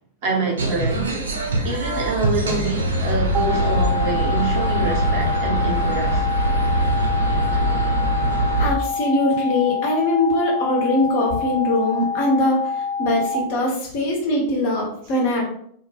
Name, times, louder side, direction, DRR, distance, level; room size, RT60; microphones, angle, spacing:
voice 1, 0.2-1.2 1.6-6.3, right 3 dB, 50° right, -2 dB, 0.9 m, -26 dB
sound 1, 0.6-8.7, right 1 dB, 70° right, 0.5 m, -22 dB
sound 2, 3.3-13.4, left 5 dB, 20° right, 0.6 m, -26 dB
voice 2, 8.6-15.4, left 1 dB, 50° left, -1 dB, 0.8 m, -21 dB
2.2 x 2.1 x 3.2 m, 0.65 s
figure-of-eight pair, 90°, 0 cm